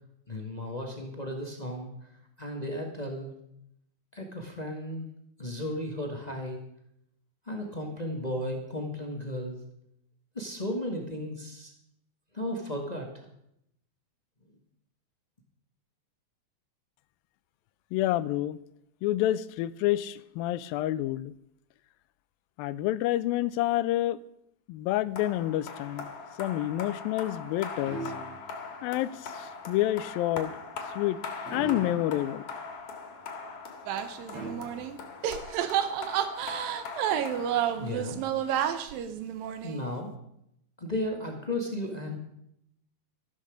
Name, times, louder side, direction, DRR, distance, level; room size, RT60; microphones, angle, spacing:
voice 1, 0.3-1.9 2.4-3.3 4.1-5.1 5.4-6.6 7.5-9.6 10.3-11.7 12.3-13.2 37.7-38.2 39.6-40.1 40.8-42.2, left 1 dB, 25° left, 2 dB, 0.8 m, -34 dB
voice 2, 17.9-18.6 19.0-21.3 22.6-24.2 24.7-26.1 26.4-28.0 28.8-30.5 31.0-31.2 31.5-32.4, left 14 dB, 90° left, 17 dB, 2.4 m, -28 dB
sound 1, 25.2-38.2, left 4 dB, 60° left, 3.0 m, -41 dB
sound 2, 27.8-28.7 31.4-32.2 34.3-35.1, right 2 dB, 55° right, 4.5 m, -40 dB
sound 3, 33.9-35.0 35.2-39.9, right 10 dB, 80° right, 2.7 m, -30 dB
13.5 x 13.0 x 5.1 m, 0.76 s
omnidirectional pair, 4.0 m